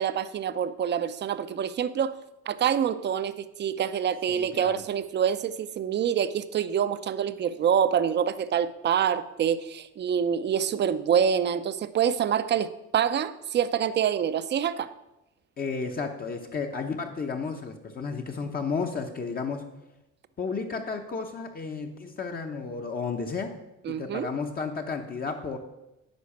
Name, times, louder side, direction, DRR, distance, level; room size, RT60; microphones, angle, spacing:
voice 1, 0.0-2.1 2.5-14.9 23.8-24.3, right 8 dB, 35° right, 13 dB, 0.6 m, -26 dB
voice 2, 4.3-4.9 15.6-19.6 20.4-23.5 23.9-25.6, left 5 dB, 30° left, 3 dB, 0.9 m, -32 dB
10.5 x 5.5 x 8.5 m, 0.96 s
cardioid pair, 145°, 30 cm